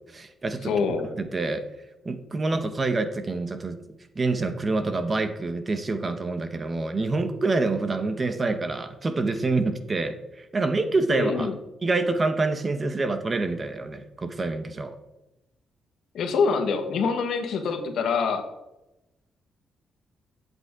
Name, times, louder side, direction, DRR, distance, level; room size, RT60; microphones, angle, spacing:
voice 1, 0.1-0.7 1.2-1.6 2.0-3.8 4.1-11.5 11.8-15.0, right 3 dB, 30° right, 9 dB, 1.1 m, -26 dB
voice 2, 0.6-1.1 11.1-11.5 16.1-18.4, left 5 dB, 75° left, 6 dB, 1.6 m, -25 dB
12.5 x 8.2 x 3.7 m, 0.95 s
cardioid pair, 110°, 0 cm